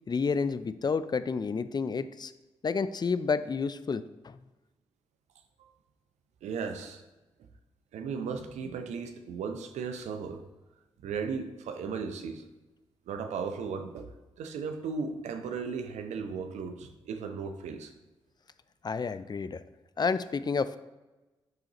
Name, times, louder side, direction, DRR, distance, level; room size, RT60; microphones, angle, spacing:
voice 1, 0.1-2.3 2.6-4.4 18.8-19.6 20.0-20.8, left 5 dB, 35° left, 13 dB, 0.4 m, -30 dB
voice 2, 6.4-7.0 7.9-10.4 11.0-12.4 13.1-17.9, right 5 dB, 75° right, 7 dB, 0.6 m, -36 dB
10.5 x 3.8 x 3.0 m, 1.1 s
hypercardioid pair, 40°, 12 cm